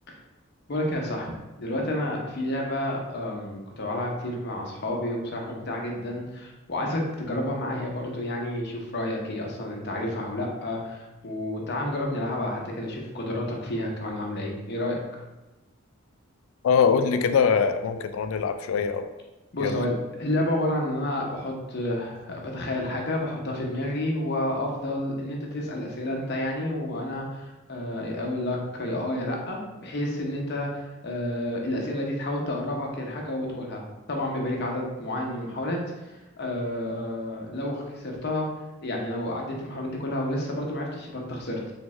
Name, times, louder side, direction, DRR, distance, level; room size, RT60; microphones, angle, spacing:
voice 1, 0.7-15.2 19.5-19.9 20.2-35.8 36.4-38.5 38.8-41.7, left 1 dB, 55° left, 0 dB, 0.8 m, -30 dB
voice 2, 16.6-19.1 19.6-19.7, left 6 dB, 80° left, 9 dB, 0.3 m, -23 dB
3.6 x 3.2 x 3.2 m, 1.0 s
head